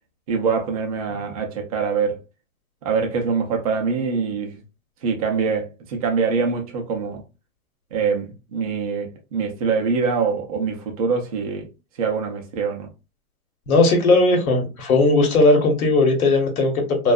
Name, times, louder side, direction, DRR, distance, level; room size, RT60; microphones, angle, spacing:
voice 1, 0.3-2.2 2.8-4.6 5.0-7.2 7.9-11.7 12.0-12.9, right 5 dB, 30° right, 0.4 m, -24 dB
voice 2, 13.7-17.1, left 2 dB, 85° left, 1.0 m, -17 dB
2.5 x 2.3 x 2.2 m
supercardioid pair, 155°, 42 cm